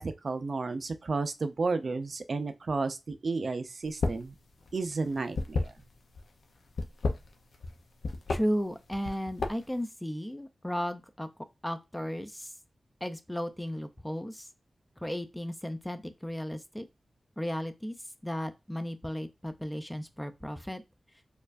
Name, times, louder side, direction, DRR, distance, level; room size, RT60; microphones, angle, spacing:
voice 1, 0.0-4.3 4.7-5.7, right 3 dB, 60° right, 0.4 m, -32 dB
sound 1, 3.9-4.3 4.6-6.2 6.7-7.7 8.0-8.4 8.9-9.8, left 3 dB, 85° left, 0.5 m, -31 dB
voice 2, 8.3-11.3 11.6-12.5 13.0-14.5 15.0-16.9 17.4-18.0 18.2-20.8, equal, 10° left, 0.3 m, -34 dB
4.4 x 2.4 x 2.4 m
wide cardioid pair, 85°, 0 cm